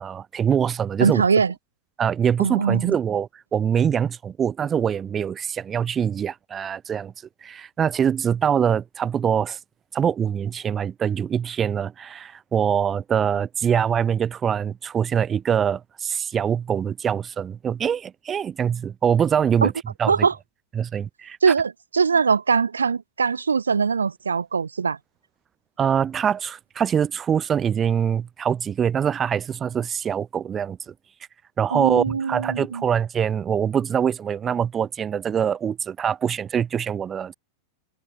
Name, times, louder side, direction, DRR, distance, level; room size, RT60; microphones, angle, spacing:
voice 1, 0.0-1.2 2.0-7.1 7.4-9.6 9.9-19.7 20.0-20.3 20.8-21.4 25.8-30.9 31.6-37.3, right 8 dB, 25° right, 0.8 m, -24 dB
voice 2, 1.0-1.5 2.4-3.0 19.6-19.7 20.1-20.3 21.4-25.0 31.7-32.9, right 5 dB, 75° right, 0.7 m, -22 dB
figure-of-eight pair, 90°, 0 cm